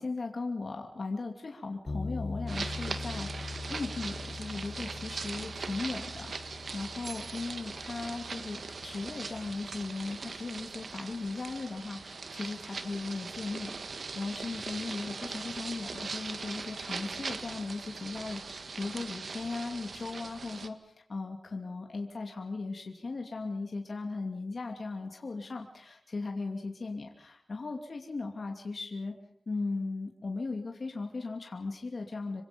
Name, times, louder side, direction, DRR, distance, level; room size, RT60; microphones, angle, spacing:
voice 1, 0.0-29.1 29.5-32.4, left 3 dB, 60° left, 2 dB, 2.7 m, -37 dB
sound 1, 1.9-10.0, left 3 dB, 40° left, 1.7 m, -42 dB
sound 2, 2.5-20.7, right 4 dB, 75° right, 1.8 m, -40 dB
27.5 x 24.5 x 5.4 m, 0.69 s
wide cardioid pair, 80°, 0 cm